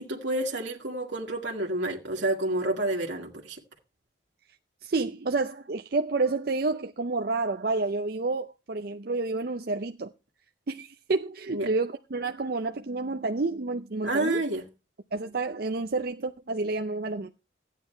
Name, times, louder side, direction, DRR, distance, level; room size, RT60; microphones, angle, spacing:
voice 1, 0.0-3.6 11.5-11.7 14.0-14.7, right 1 dB, 80° right, 1.8 m, -29 dB
voice 2, 4.8-10.1 10.7-14.4 15.1-17.3, right 3 dB, 55° right, 0.6 m, -29 dB
14.0 x 9.2 x 4.5 m
head